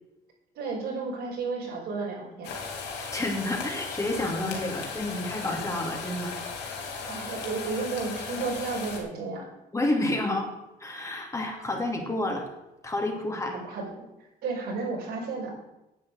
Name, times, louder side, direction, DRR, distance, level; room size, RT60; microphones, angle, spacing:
voice 1, 0.6-2.5 7.0-9.5 13.5-14.1 14.4-15.5, right 4 dB, 75° right, -2 dB, 5.8 m, -32 dB
sound 1, 2.4-9.0, left 5 dB, 80° left, 3.1 m, -36 dB
voice 2, 2.9-6.4 9.7-10.5 10.8-12.5 12.8-13.5, left 1 dB, 20° left, 2 dB, 2.7 m, -29 dB
10.0 x 8.0 x 8.2 m, 0.94 s
cardioid pair, 110°, 17 cm